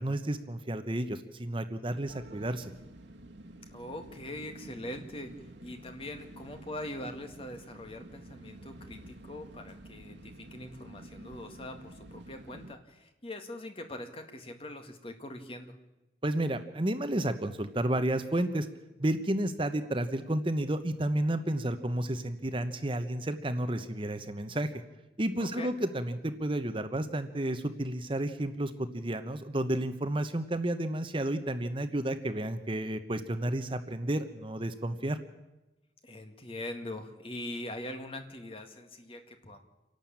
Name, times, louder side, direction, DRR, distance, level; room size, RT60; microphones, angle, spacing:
voice 1, 0.0-2.7 16.2-18.7 19.0-24.7 25.2-35.2, right 1 dB, 30° right, 9 dB, 1.0 m, -31 dB
sound 1, 2.1-12.7, right 1 dB, 85° right, 1.4 m, -50 dB
voice 2, 3.7-15.8 25.4-25.7 36.0-39.6, left 1 dB, 30° left, 6 dB, 1.9 m, -42 dB
28.0 x 12.0 x 8.7 m, 1.0 s
head